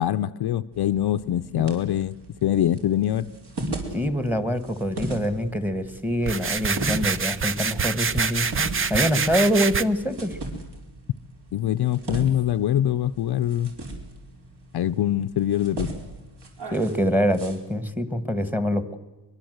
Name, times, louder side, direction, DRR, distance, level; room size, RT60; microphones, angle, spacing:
voice 1, 0.0-2.1 2.4-3.3 11.5-13.7 14.7-15.9, left 11 dB, 55° left, 10 dB, 0.7 m, -23 dB
sound 1, 0.7-17.6, right 2 dB, 60° right, 5.0 m, -38 dB
voice 2, 3.9-8.5 8.9-10.4 16.7-19.0, equal, 5° right, 12 dB, 1.5 m, -25 dB
sound 2, 6.2-9.8, right 5 dB, 30° right, 0.7 m, -26 dB
23.5 x 22.5 x 8.0 m, 1.1 s
cardioid pair, 135°, 46 cm